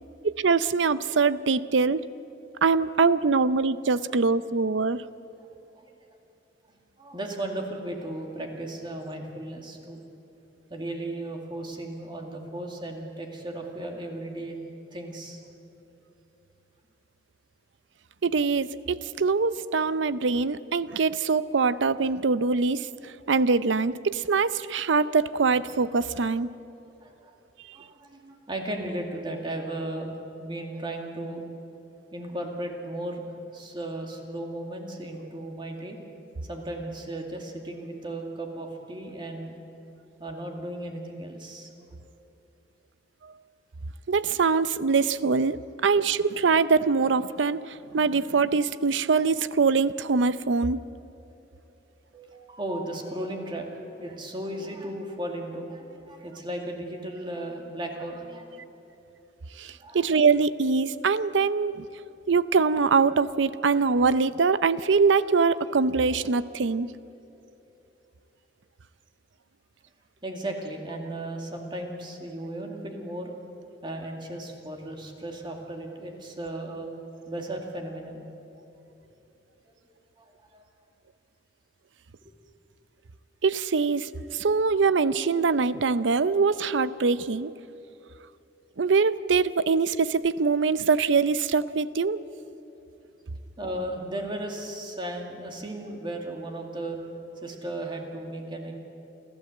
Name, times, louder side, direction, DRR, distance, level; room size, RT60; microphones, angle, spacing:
voice 1, 0.2-2.0 2.6-5.0 18.2-22.9 23.3-26.5 43.2-43.3 44.1-50.8 59.6-61.8 62.3-66.9 83.4-87.5 88.8-92.2, right 4 dB, 85° right, 15 dB, 0.6 m, -23 dB
voice 2, 7.0-10.0 10.7-14.6 14.9-15.4 27.0-27.3 27.7-30.1 30.4-31.4 32.1-36.0 36.5-39.6 40.2-41.7 52.1-58.7 59.8-60.1 70.2-73.3 73.8-76.9 77.3-78.3 80.2-80.3 80.5-80.6 82.2-82.3 93.6-97.0 97.4-98.7, right 1 dB, 25° right, 2 dB, 2.3 m, -35 dB
29.0 x 12.5 x 7.8 m, 2.8 s
head